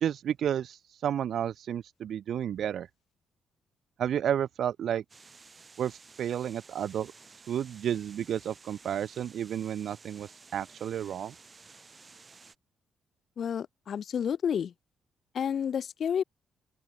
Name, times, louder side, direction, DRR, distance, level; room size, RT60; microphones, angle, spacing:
voice 1, 0.0-2.9 4.0-5.0 5.8-7.1 7.5-11.3, right 9 dB, 65° right, 0.5 m, -31 dB
sound 1, 5.1-12.6, right 4 dB, 30° right, 1.8 m, -54 dB
voice 2, 13.4-14.7 15.3-16.2, left 8 dB, 55° left, 0.4 m, -30 dB
open air
cardioid pair, 90°, 0 cm